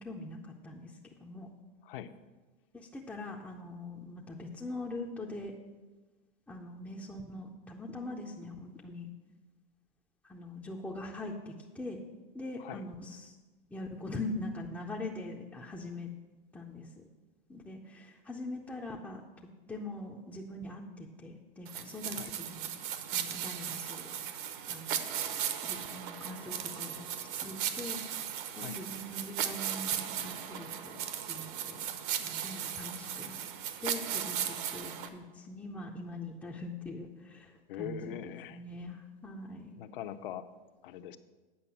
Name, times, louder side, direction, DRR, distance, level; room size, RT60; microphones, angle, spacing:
voice 1, 0.0-1.5 2.7-5.5 6.5-9.1 10.2-12.0 12.3-13.4 13.7-16.1 16.5-17.0 17.5-19.2 19.7-22.7 23.1-24.1 24.7-25.2 25.6-28.0 28.5-31.0 31.3-31.9 32.2-33.4 33.8-39.7, left 2 dB, 5° left, -2 dB, 0.5 m, -42 dB
sound 1, 21.7-35.1, right 9 dB, 60° right, 0.9 m, -37 dB
voice 2, 37.7-38.6 39.8-40.4 40.8-41.2, left 11 dB, 65° left, 11 dB, 0.7 m, -42 dB
8.6 x 5.3 x 7.2 m, 1.2 s
hypercardioid pair, 135°, 29 cm